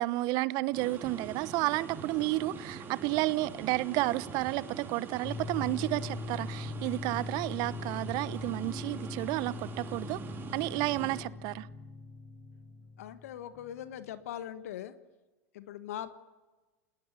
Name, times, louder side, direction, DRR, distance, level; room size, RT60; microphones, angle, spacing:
voice 1, 0.0-10.2 10.5-11.7, right 19 dB, 55° right, 1.0 m, -31 dB
sound 1, 0.7-11.2, right 5 dB, 25° right, 3.5 m, -44 dB
sound 2, 5.2-14.0, left 3 dB, 40° left, 7.6 m, -42 dB
voice 2, 13.0-14.9 15.5-16.1, left 11 dB, 70° left, 1.5 m, -41 dB
29.0 x 20.0 x 8.3 m
hypercardioid pair, 85°, 8 cm